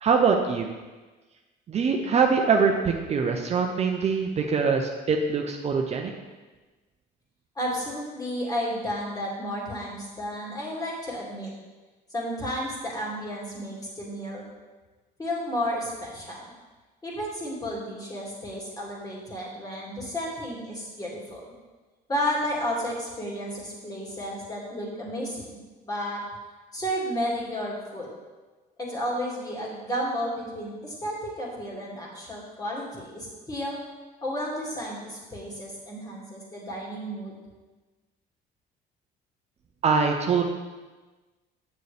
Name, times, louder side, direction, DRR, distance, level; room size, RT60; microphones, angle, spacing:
voice 1, 0.0-0.7 1.7-6.1 39.8-40.4, right 5 dB, 40° right, 3 dB, 0.6 m, -23 dB
voice 2, 7.6-11.5 12.1-14.5 15.2-16.4 17.0-21.4 22.1-25.6 25.8-26.2 26.7-28.1 28.8-33.8 34.2-37.3, equal, 20° left, -4 dB, 2.3 m, -32 dB
8.1 x 6.7 x 3.4 m, 1.3 s
cardioid pair, 110°, 17 cm